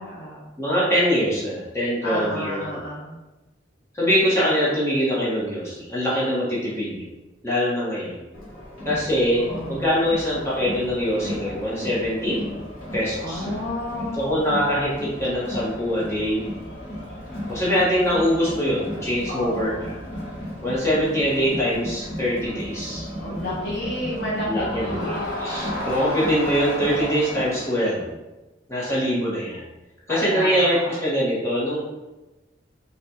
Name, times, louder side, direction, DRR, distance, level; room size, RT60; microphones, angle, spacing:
voice 1, 0.0-0.5 2.0-3.2 9.4-10.2 13.2-14.4 19.3-19.9 23.2-26.0 30.1-31.0, left 1 dB, 65° left, -5 dB, 0.7 m, -31 dB
voice 2, 0.6-2.8 3.9-7.1 7.4-8.3 8.8-12.4 12.9-13.5 14.1-16.4 17.5-20.0 20.6-23.4 24.5-28.1 28.7-29.6 30.1-31.9, equal, 15° left, -8 dB, 1.1 m, -23 dB
Crowd, 8.3-27.8, left 1 dB, 45° left, 1.3 m, -34 dB
5.7 x 2.5 x 2.8 m, 1.1 s
head